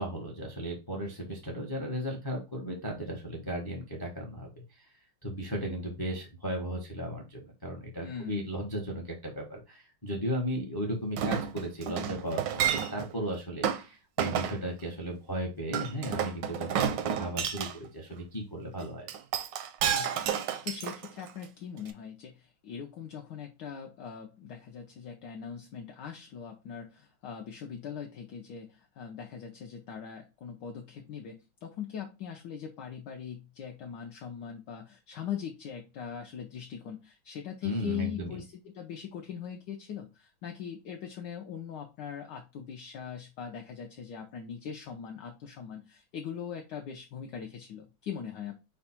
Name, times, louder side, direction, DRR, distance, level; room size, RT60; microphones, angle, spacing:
voice 1, 0.0-4.5 5.2-19.1 37.6-38.4, right 1 dB, 35° left, 1 dB, 0.3 m, -36 dB
voice 2, 8.0-8.5 19.9-48.5, left 8 dB, 75° left, 3 dB, 1.0 m, -41 dB
Chink clink, 11.2-13.1 13.6-13.8 14.2-14.6 15.7-17.7 19.1-21.4 21.9-22.0, right 8 dB, 75° right, 1.1 m, -30 dB
4.9 x 2.3 x 4.2 m, 0.28 s
omnidirectional pair, 2.3 m